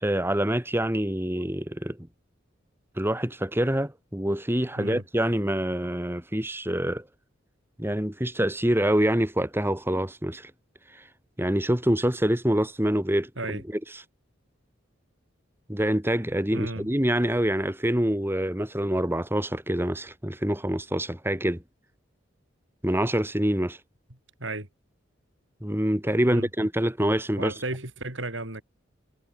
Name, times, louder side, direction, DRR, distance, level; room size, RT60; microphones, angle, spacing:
voice 1, 0.0-2.0 3.0-7.0 7.8-10.5 10.9-11.0 11.4-13.6 13.9-14.0 15.7-21.6 22.8-23.8 25.6-27.5, right 1 dB, 10° right, 2.4 m, -26 dB
voice 2, 16.5-16.9 24.4-24.7 26.2-26.5 27.4-28.6, right 2 dB, 75° right, 6.2 m, -33 dB
head